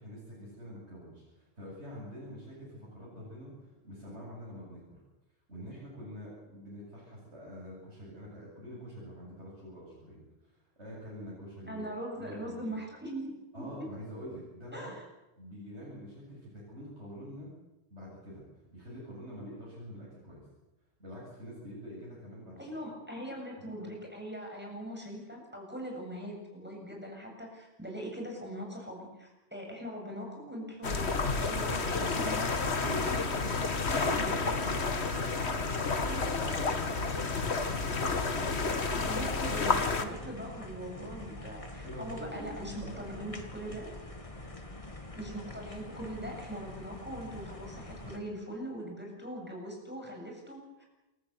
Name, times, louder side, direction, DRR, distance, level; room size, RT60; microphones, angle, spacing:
voice 1, 0.0-3.5 3.8-5.0 5.5-10.5 10.8-11.9 12.2-12.8 13.5-14.9 15.4-17.5 17.9-18.4 18.7-20.4 21.0-22.7 23.8-23.9 31.4-32.1 32.8-33.4 33.9-38.9 41.8-43.0, equal, 85° right, -6 dB, 8.5 m, -45 dB
voice 2, 11.7-13.9 14.7-15.0 22.6-34.6 34.9-35.1 36.0-36.3 38.9-43.9 45.2-50.8, equal, 10° right, 0 dB, 7.5 m, -41 dB
sound 1, 30.8-40.1, left 4 dB, 75° left, 1.9 m, -30 dB
sound 2, 32.4-48.2, left 1 dB, 30° left, 2.3 m, -45 dB
28.0 x 15.5 x 8.2 m, 0.99 s
omnidirectional pair, 1.1 m